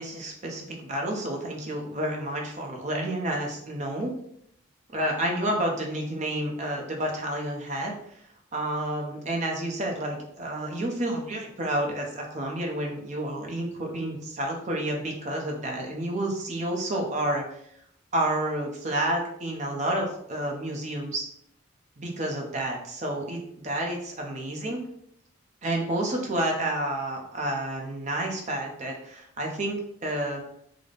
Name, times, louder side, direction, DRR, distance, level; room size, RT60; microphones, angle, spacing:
voice 1, 0.0-4.1 4.9-7.9 8.5-17.4 18.1-21.3 22.0-24.8 25.6-30.4, right 1 dB, 35° right, 0 dB, 0.6 m, -30 dB
3.9 x 2.1 x 3.3 m, 0.71 s
head